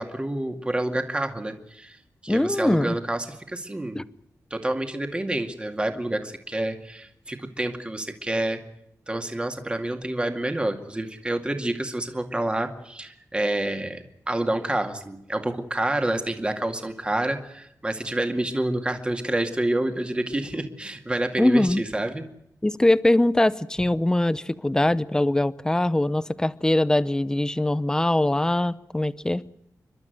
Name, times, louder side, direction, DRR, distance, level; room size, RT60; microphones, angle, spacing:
voice 1, 0.0-4.0 4.5-8.6 9.1-22.2, right 1 dB, 15° right, 5 dB, 2.2 m, -28 dB
voice 2, 2.3-3.0 4.0-4.1 21.4-21.8 22.6-29.4, left 1 dB, 10° left, 16 dB, 0.8 m, -22 dB
29.5 x 12.5 x 9.3 m, 0.79 s
wide cardioid pair, 135°, 6 cm